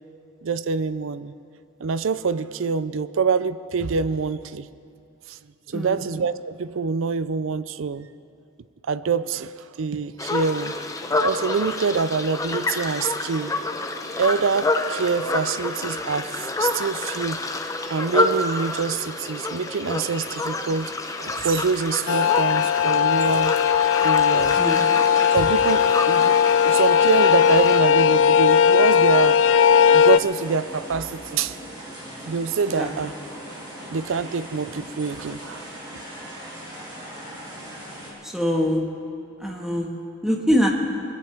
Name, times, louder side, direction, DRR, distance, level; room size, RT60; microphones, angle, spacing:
voice 1, 0.4-1.3 1.8-4.7 5.3-5.4 5.7-8.1 8.9-10.7 11.2-13.5 14.2-17.4 17.9-20.9 21.2-23.6 24.0-24.7 25.3-26.4 26.6-29.4 29.9-31.6 32.3-33.1 33.9-35.6, right 5 dB, 60° right, 15 dB, 0.4 m, -25 dB
sound 1, 10.2-27.8, left 2 dB, 15° left, 0.7 m, -28 dB
sound 2, 22.1-30.2, left 7 dB, 60° left, 0.3 m, -18 dB
sound 3, 24.4-38.1, equal, 20° right, 3.3 m, -39 dB
voice 2, 38.2-38.8 39.4-40.7, equal, ahead, -1 dB, 1.5 m, -23 dB
22.0 x 16.5 x 3.5 m, 2.6 s
head